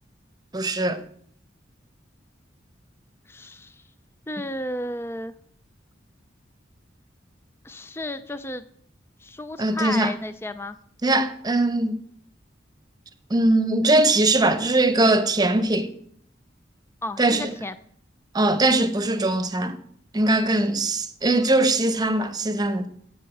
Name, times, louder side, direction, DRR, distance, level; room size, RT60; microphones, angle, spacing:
voice 1, 0.5-1.0 9.6-10.1 11.0-12.0 13.3-15.9 17.2-17.5 18.3-19.7 20.1-22.9, right 2 dB, 20° right, 0.8 m, -21 dB
voice 2, 3.3-3.8 4.3-5.3 7.6-8.6 9.2-10.8 17.0-17.7 20.6-20.7, left 1 dB, 15° left, 0.4 m, -33 dB
8.0 x 7.8 x 7.9 m
head